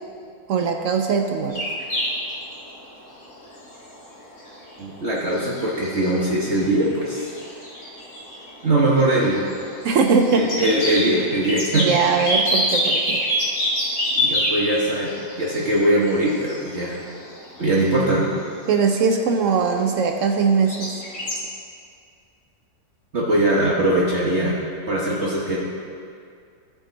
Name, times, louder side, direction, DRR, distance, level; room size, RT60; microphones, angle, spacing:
voice 1, 0.5-1.7 9.8-10.5 11.7-13.2 18.7-20.9, right 5 dB, 65° right, 4 dB, 0.8 m, -20 dB
sound 1, 1.5-20.4 20.7-21.4, equal, 70° left, 2.4 m, -27 dB
voice 2, 4.8-7.3 8.6-9.4 10.3-11.9 14.1-17.0 17.6-18.3 23.1-25.6, right 1 dB, 45° right, -6 dB, 1.3 m, -21 dB
15.0 x 5.1 x 3.9 m, 2.3 s
omnidirectional pair, 1.7 m